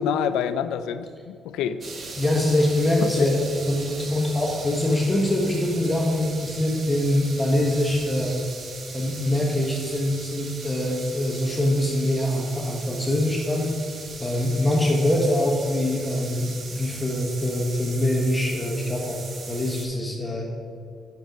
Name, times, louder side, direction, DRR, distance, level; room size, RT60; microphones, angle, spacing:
voice 1, 0.0-1.8 3.0-3.2, left 8 dB, 90° left, 13 dB, 0.3 m, -27 dB
sound 1, 1.8-19.9, right 3 dB, 50° right, 1.0 m, -39 dB
voice 2, 2.2-8.4 8.9-13.7 14.2-20.4, left 1 dB, 10° left, -2 dB, 1.0 m, -24 dB
5.9 x 5.3 x 5.1 m, 2.2 s
cardioid pair, 90°, 0 cm